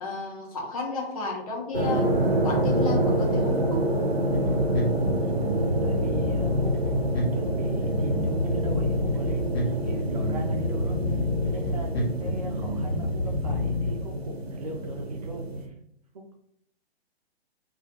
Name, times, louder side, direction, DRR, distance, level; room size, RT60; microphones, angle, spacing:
voice 1, 0.0-2.1 2.4-3.8, left 3 dB, 35° left, 0 dB, 0.8 m, -32 dB
sound 1, 1.7-15.7, right 1 dB, 75° right, 0.8 m, -27 dB
Bass guitar, 4.3-13.9, left 2 dB, 75° left, 0.9 m, -29 dB
voice 2, 5.2-6.8 7.3-15.7, right 2 dB, 40° right, 2 dB, 0.5 m, -40 dB
2.3 x 2.2 x 3.2 m, 0.71 s
figure-of-eight pair, 125°, 31 cm